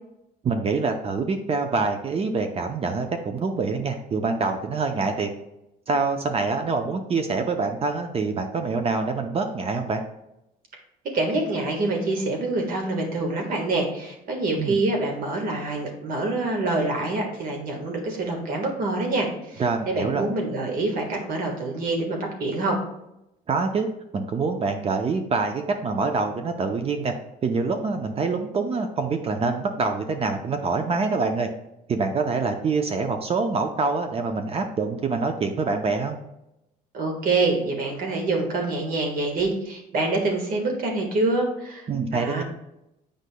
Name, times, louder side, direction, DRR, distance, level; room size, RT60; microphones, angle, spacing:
voice 1, 0.4-5.3 5.9-10.0 14.6-14.8 19.6-20.3 23.5-23.9 24.1-27.1 27.4-31.5 31.9-36.2 41.9-42.4, right 4 dB, 35° right, 5 dB, 0.6 m, -25 dB
voice 2, 11.1-22.8 36.9-42.4, right 2 dB, 55° right, 2 dB, 1.5 m, -26 dB
8.2 x 5.1 x 2.2 m, 0.86 s
cardioid pair, 110°, 17 cm